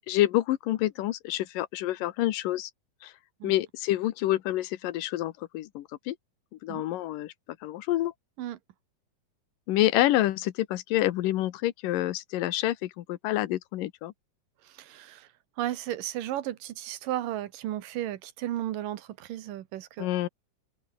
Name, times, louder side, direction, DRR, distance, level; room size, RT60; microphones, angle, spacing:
voice 1, 0.0-2.7 3.0-3.1 3.4-6.2 6.6-7.3 7.6-8.1 9.7-14.1 20.0-20.3, left 15 dB, 85° left, 2.7 m, -27 dB
voice 2, 14.6-15.3 15.6-20.1, right 13 dB, 85° right, 3.0 m, -34 dB
open air
omnidirectional pair, 3.8 m